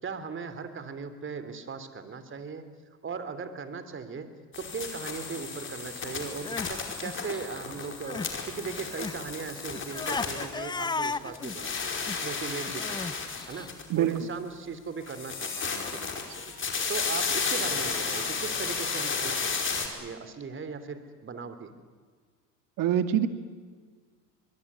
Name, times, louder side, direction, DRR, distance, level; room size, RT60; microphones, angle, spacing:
voice 1, 0.0-2.7 3.0-4.3 4.6-11.9 12.2-13.2 13.5-13.7 13.9-16.4 16.9-21.7, right 5 dB, 25° right, 11 dB, 3.2 m, -38 dB
sound 1, 4.5-11.1 11.3-14.2 15.0-19.9, left 5 dB, 25° left, 5.0 m, -33 dB
Crying sobbing, 6.2-8.4 8.6-13.7, left 4 dB, 10° left, 0.7 m, -36 dB
voice 2, 22.8-23.3, right 10 dB, 45° right, 10 dB, 2.2 m, -24 dB
25.0 x 22.0 x 9.7 m, 1.6 s
hypercardioid pair, 90°, 48 cm